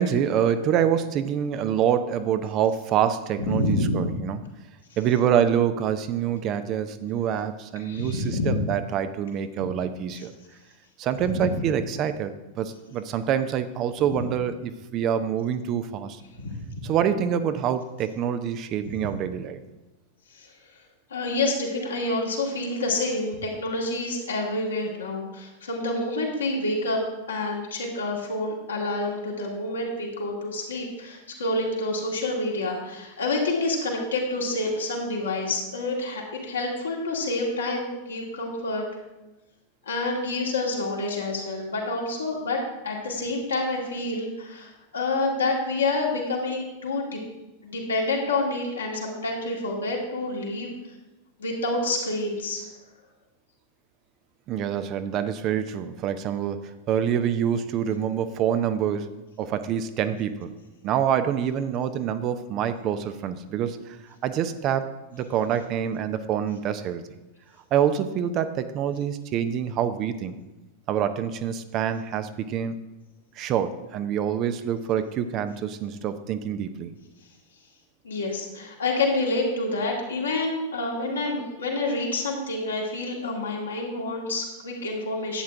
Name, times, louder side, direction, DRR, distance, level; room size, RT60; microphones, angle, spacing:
voice 1, 0.0-4.4 5.0-10.3 11.0-16.2 16.8-19.6 54.5-56.6 56.9-60.5 60.8-64.0 64.2-67.0 67.7-70.4 70.9-72.7 73.4-76.9, right 9 dB, 35° right, 10 dB, 0.6 m, -26 dB
voice 2, 3.5-4.1 7.8-8.6 11.2-11.4 16.4-16.5 20.4-20.5 21.1-27.0 27.3-38.8 39.9-42.6 42.8-47.2 47.6-50.7 51.4-52.6 78.0-85.4, left 2 dB, 70° left, -2 dB, 2.3 m, -28 dB
11.0 x 8.7 x 3.6 m, 1.0 s
figure-of-eight pair, 90°, 0 cm